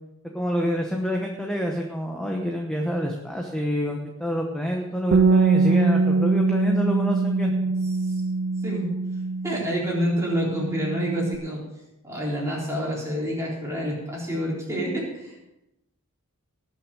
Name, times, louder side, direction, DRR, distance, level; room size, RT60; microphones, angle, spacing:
voice 1, 0.3-7.5, equal, 5° left, 0 dB, 1.0 m, -27 dB
Bass guitar, 5.1-11.4, right 3 dB, 50° right, 0.4 m, -23 dB
voice 2, 9.4-11.6 12.0-15.5, equal, 15° right, -5 dB, 3.8 m, -28 dB
19.0 x 6.4 x 5.0 m, 0.93 s
head